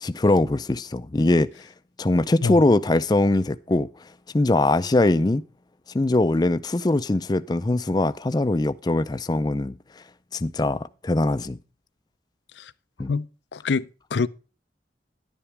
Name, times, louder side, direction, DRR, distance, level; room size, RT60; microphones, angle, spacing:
voice 1, 0.0-1.5 2.0-3.9 4.3-5.4 5.9-9.8 10.3-11.6 13.0-13.1, left 2 dB, 25° left, 0.4 m, -22 dB
voice 2, 13.5-14.3, left 4 dB, 80° left, 0.5 m, -25 dB
11.0 x 10.0 x 3.3 m
head